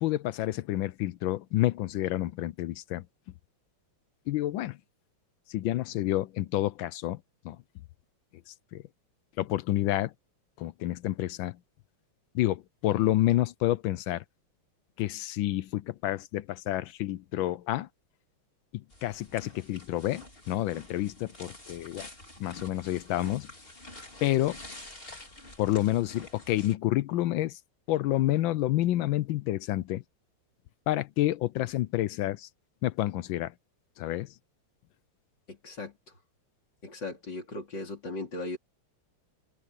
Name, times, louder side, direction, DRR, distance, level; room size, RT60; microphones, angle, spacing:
voice 1, 0.0-3.1 4.3-4.8 5.5-7.6 8.5-8.8 9.4-10.1 10.6-11.6 12.3-14.2 15.0-17.9 18.7-22.1 22.4-23.5 24.2-24.6 25.6-27.6 27.9-30.0 30.9-32.5 32.8-33.5 34.0-34.3, left 15 dB, 75° left, 1.2 m, -29 dB
sound 1, 18.9-26.8, left 2 dB, 25° left, 4.0 m, -48 dB
voice 2, 35.5-35.9 36.8-38.6, left 2 dB, 55° left, 4.2 m, -37 dB
open air
omnidirectional pair, 2.4 m